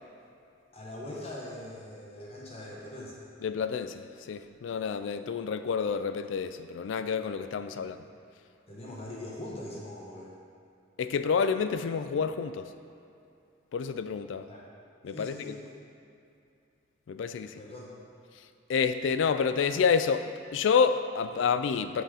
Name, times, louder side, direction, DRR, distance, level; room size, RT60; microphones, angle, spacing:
voice 1, 0.7-3.2 7.7-7.9 8.7-10.3 14.5-14.6 15.1-15.6 17.5-17.9, left 1 dB, 30° left, -5 dB, 1.0 m, -42 dB
voice 2, 3.4-8.0 11.0-12.7 13.7-14.5 15.0-15.5 17.1-17.5 18.7-22.0, left 6 dB, 75° left, 11 dB, 0.3 m, -28 dB
7.9 x 3.8 x 4.9 m, 2.7 s
head